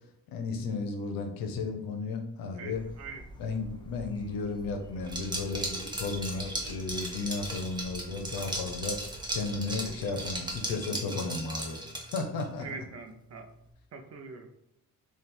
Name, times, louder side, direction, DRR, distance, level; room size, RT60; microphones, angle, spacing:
voice 1, 0.3-2.8 3.4-9.0 9.3-11.8 12.1-12.7, left 3 dB, 85° left, 5 dB, 0.7 m, -34 dB
voice 2, 2.5-3.2 9.9-10.0 10.9-11.2 12.6-13.5 13.9-14.5, right 4 dB, 50° right, 6 dB, 0.6 m, -43 dB
sound 1, 2.7-10.7, right 1 dB, 15° left, 0.4 m, -48 dB
Liquid, 5.1-12.5, right 1 dB, 15° right, 0.7 m, -37 dB
3.5 x 2.4 x 4.3 m, 0.74 s
cardioid pair, 130°, 34 cm